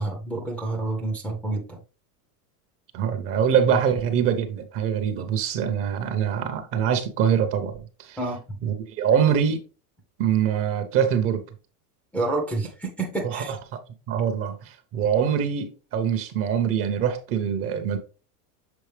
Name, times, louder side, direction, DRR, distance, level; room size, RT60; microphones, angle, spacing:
voice 1, 0.0-1.8 8.2-8.6 12.1-13.6, right 2 dB, 5° left, 0.6 m, -29 dB
voice 2, 2.9-8.2 8.6-9.6 10.2-11.4 13.2-13.4 14.1-18.0, right 8 dB, 30° right, 0.7 m, -24 dB
7.1 x 4.1 x 3.2 m
supercardioid pair, 160°, 46 cm